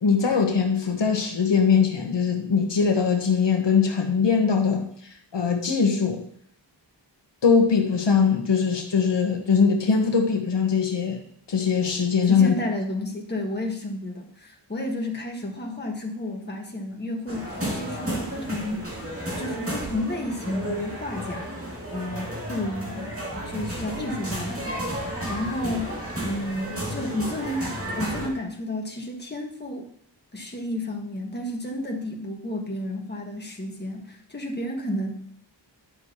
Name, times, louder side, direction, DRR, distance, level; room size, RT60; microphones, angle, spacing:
voice 1, 0.0-6.2 7.4-11.2 11.5-12.6, left 5 dB, 70° left, 3 dB, 1.2 m, -21 dB
voice 2, 12.2-18.9 19.4-21.6 21.9-24.6 24.9-26.0 26.2-29.9 30.3-35.2, left 1 dB, 25° left, 1 dB, 1.4 m, -31 dB
sound 1, 17.3-28.3, right 1 dB, 30° right, 2.2 m, -32 dB
10.5 x 6.4 x 2.9 m, 0.65 s
wide cardioid pair, 110°, 45 cm